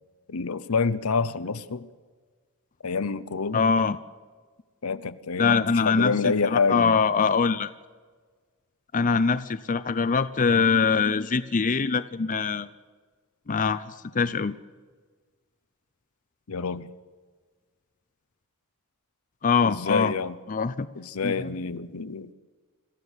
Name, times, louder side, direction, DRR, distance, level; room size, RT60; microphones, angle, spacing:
voice 1, 0.3-1.9 2.8-3.6 4.8-6.9 16.5-16.9 19.6-20.4 21.0-22.3, left 4 dB, 75° left, 0.8 m, -27 dB
voice 2, 3.5-4.0 5.4-7.7 8.9-12.7 13.5-14.6 19.4-20.1 20.5-20.9 21.2-21.5, left 5 dB, 35° left, 0.5 m, -23 dB
26.5 x 14.5 x 8.1 m
head